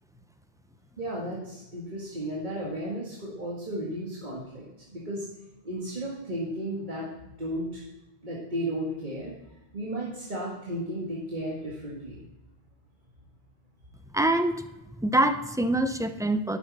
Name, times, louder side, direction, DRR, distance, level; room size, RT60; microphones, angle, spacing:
voice 1, 1.0-5.3 5.6-7.8 8.2-9.3 9.7-12.2, right 1 dB, 45° right, -5 dB, 2.0 m, -34 dB
voice 2, 14.1-14.6 15.0-16.6, right 1 dB, 5° right, 9 dB, 0.4 m, -25 dB
12.0 x 10.0 x 4.1 m, 0.97 s
omnidirectional pair, 1.1 m